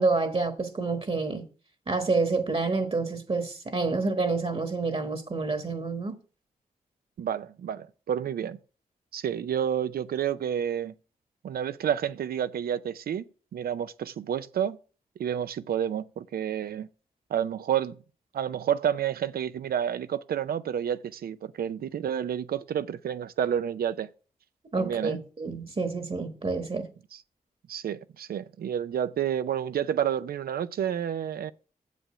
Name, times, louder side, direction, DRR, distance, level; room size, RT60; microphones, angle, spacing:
voice 1, 0.0-1.5 1.9-6.2 24.7-26.9, right 3 dB, 40° right, 1.2 m, -28 dB
voice 2, 7.2-8.6 9.1-10.9 11.4-14.8 15.2-16.9 17.3-18.0 18.3-24.1 24.7-25.2 27.1-27.2 27.7-31.5, right 9 dB, 85° right, 0.5 m, -30 dB
7.5 x 5.1 x 6.7 m
cardioid pair, 55°, 15 cm